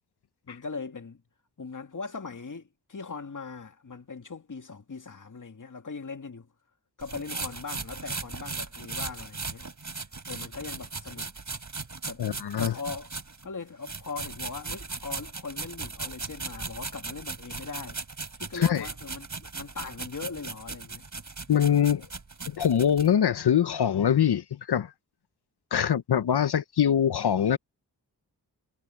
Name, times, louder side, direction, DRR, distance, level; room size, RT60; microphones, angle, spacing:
voice 1, 0.5-1.2 1.6-6.5 7.0-9.7 10.3-11.3 12.1-12.2 12.6-13.1 13.4-18.0 18.4-21.1, left 4 dB, 50° left, 2.3 m, -40 dB
sound 1, 7.0-13.5 13.8-23.1, right 4 dB, 45° right, 3.7 m, -38 dB
voice 2, 12.2-12.7 18.5-18.9 21.5-22.1 22.5-24.9 25.7-27.6, left 9 dB, 70° left, 0.8 m, -23 dB
cardioid pair, 55°, 40 cm